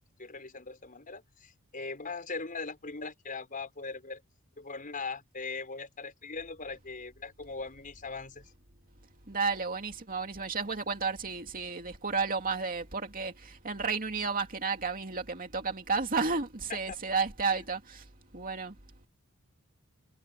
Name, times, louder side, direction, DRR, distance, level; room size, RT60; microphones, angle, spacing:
voice 1, 0.2-4.2 4.6-8.5 16.7-17.0, left 4 dB, 40° left, 5.9 m, -40 dB
voice 2, 9.3-18.8, right 4 dB, 40° right, 2.5 m, -32 dB
head